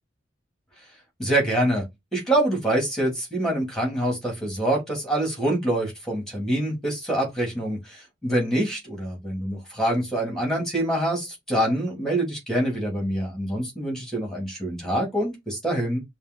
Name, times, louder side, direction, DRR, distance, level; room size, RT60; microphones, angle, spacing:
voice 1, 1.2-1.8 2.1-16.0, right 1 dB, 5° left, 2.5 m, -25 dB
5.3 x 2.7 x 3.7 m
head